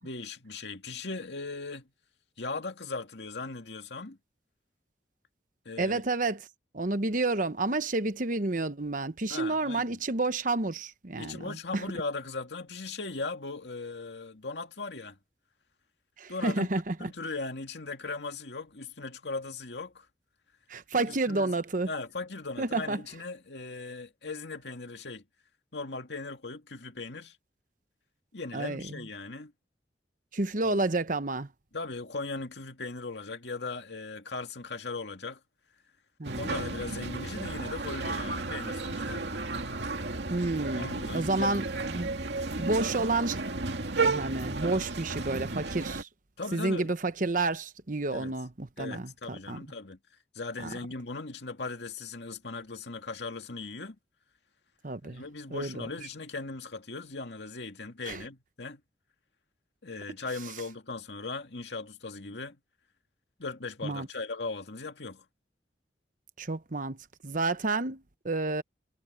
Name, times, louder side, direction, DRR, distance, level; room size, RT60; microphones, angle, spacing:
voice 1, 0.0-1.8 2.4-4.2 5.7-6.0 9.3-10.0 11.1-15.2 16.3-16.7 17.0-20.1 21.1-21.5 21.9-25.2 25.7-27.4 28.3-29.5 30.6-30.8 31.7-35.4 36.3-39.3 40.8-41.6 46.4-46.9 48.1-48.3 48.8-50.0 50.3-54.0 55.0-58.8 59.8-62.6 63.4-65.2, left 3 dB, 70° left, 2.3 m, -38 dB
voice 2, 5.8-6.4 6.7-11.8 16.2-17.1 20.7-21.9 22.6-23.0 28.5-29.0 30.3-31.5 36.2-36.6 40.3-42.1 42.6-43.4 44.0-46.1 46.5-49.1 49.5-49.6 50.6-50.7 54.8-55.2 55.5-55.9 58.1-58.2 63.8-64.1 66.4-67.0 67.2-68.6, right 2 dB, 45° right, 1.0 m, -30 dB
sound 1, 36.2-46.0, right 3 dB, 75° right, 2.4 m, -33 dB
head